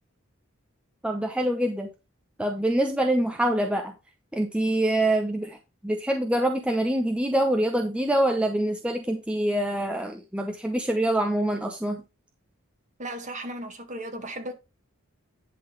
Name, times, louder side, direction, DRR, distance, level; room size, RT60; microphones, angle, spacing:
voice 1, 1.0-1.9 2.4-3.9 4.3-5.6 5.8-12.0, right 1 dB, 5° right, 0.7 m, -25 dB
voice 2, 13.0-14.5, right 1 dB, 35° right, 1.8 m, -35 dB
10.5 x 3.9 x 5.0 m
head